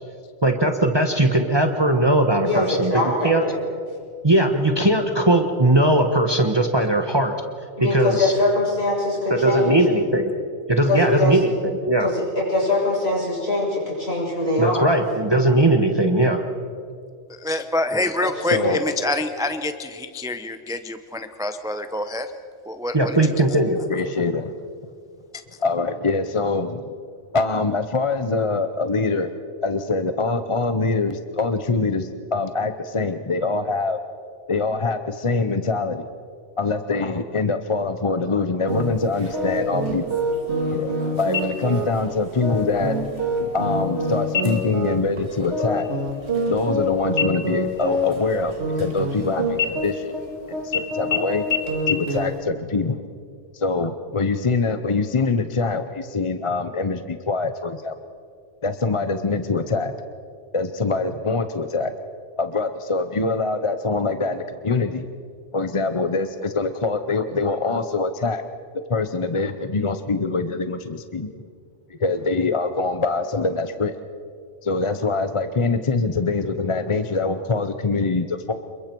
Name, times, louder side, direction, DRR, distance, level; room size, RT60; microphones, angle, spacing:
voice 1, 0.4-2.9 3.2-3.4 4.2-7.3 7.8-8.3 9.3-10.3 10.7-12.1 14.6-16.4 22.9-23.8, right 1 dB, 20° right, 5 dB, 1.2 m, -19 dB
voice 2, 2.4-3.6 7.8-9.8 10.9-11.4 12.0-14.9 18.6-18.8, left 2 dB, 60° left, -5 dB, 7.4 m, -22 dB
voice 3, 17.4-22.3 22.7-23.2, left 2 dB, 5° right, 8 dB, 0.6 m, -26 dB
voice 4, 23.9-24.6 25.6-26.9 27.3-29.3 29.6-34.0 34.5-36.1 36.6-40.0 40.7-43.0 43.5-45.9 46.5-50.1 50.6-51.5 51.9-53.1 53.5-57.9 58.6-60.0 60.5-61.9 62.4-65.1 65.5-68.4 68.9-71.4 72.0-73.9 74.6-78.5, left 3 dB, 30° left, 9 dB, 0.7 m, -24 dB
sound 1, 38.7-52.4, equal, 65° right, 2.6 m, -26 dB
sound 2, 41.3-42.0 42.4-42.5 43.0-43.6 44.3-44.8 45.2-45.4 45.7-46.8 47.2-49.2 49.5-50.3 50.7-50.8 51.1-51.2 51.5-51.6 51.9-52.0, left 7 dB, 85° left, 1.8 m, -28 dB
27.5 x 22.0 x 4.6 m, 2.3 s
omnidirectional pair, 1.2 m